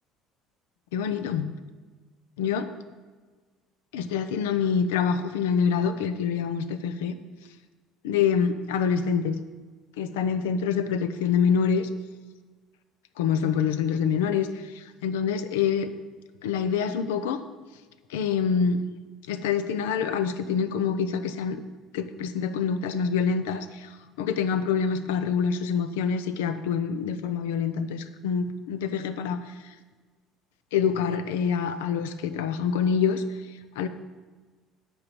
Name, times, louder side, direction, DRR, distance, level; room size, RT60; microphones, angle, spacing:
voice 1, 0.9-1.5 2.4-2.7 3.9-7.2 8.0-9.4 10.0-11.9 13.2-15.9 16.4-17.4 18.1-18.8 19.3-21.6 21.9-23.9 24.2-29.4 30.7-33.2 33.8-33.9, left 6 dB, 85° left, 10 dB, 0.6 m, -26 dB
8.8 x 5.5 x 7.8 m, 1.4 s
hypercardioid pair, 75°, 0 cm